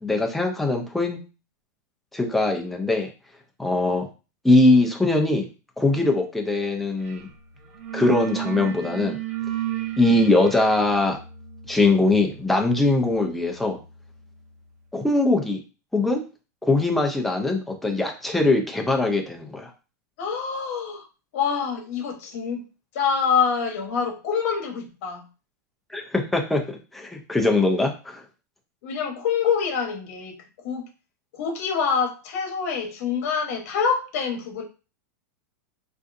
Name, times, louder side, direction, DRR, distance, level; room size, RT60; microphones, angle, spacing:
voice 1, 0.0-1.2 2.1-3.1 3.6-4.1 4.4-5.5 5.8-7.3 7.9-9.2 10.0-11.2 11.7-13.8 14.9-15.6 15.9-16.2 16.6-19.7 25.9-28.2, left 2 dB, ahead, 1 dB, 0.4 m, -21 dB
sound 1, 7.0-7.3 7.6-14.2, right 12 dB, 65° right, 1.1 m, -34 dB
voice 2, 20.2-21.1 21.3-22.6 22.9-25.3 28.8-30.4 30.6-30.9 31.3-34.6, left 6 dB, 50° left, 2 dB, 1.0 m, -26 dB
3.6 x 2.6 x 2.5 m, 0.32 s
supercardioid pair, 160°, 10 cm